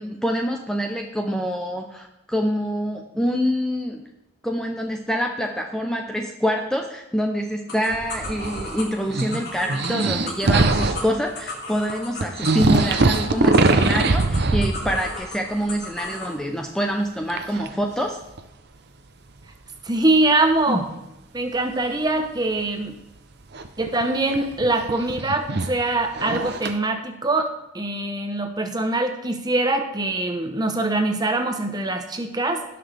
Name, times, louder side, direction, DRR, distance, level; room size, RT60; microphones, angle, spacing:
voice 1, 0.0-4.1 4.4-18.2, equal, 5° left, 2 dB, 0.6 m, -26 dB
sound 1, 7.7-16.3, left 2 dB, 50° left, 2.3 m, -36 dB
sound 2, 7.9-8.8 9.1-11.1 11.9-12.0 12.2-15.3 15.6-16.1 17.3-17.7 18.4-18.5 20.4-20.5 23.5-26.7, right 3 dB, 50° right, 0.7 m, -22 dB
voice 2, 19.8-20.9 21.3-23.0 23.8-32.6, right 2 dB, 20° right, 6 dB, 0.9 m, -23 dB
17.5 x 5.9 x 3.4 m, 0.90 s
head